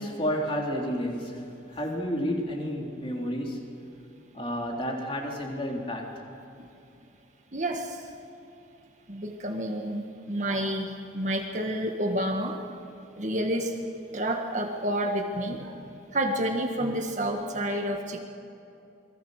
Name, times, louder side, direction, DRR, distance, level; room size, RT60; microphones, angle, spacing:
voice 1, 0.0-1.4 1.7-3.6 4.3-6.1, equal, 30° left, 0 dB, 3.4 m, -31 dB
voice 2, 7.5-8.0 9.1-12.6 13.2-13.7 14.1-15.8 16.1-18.2, right 1 dB, 40° right, 2 dB, 1.7 m, -29 dB
28.0 x 21.5 x 6.6 m, 2.7 s
head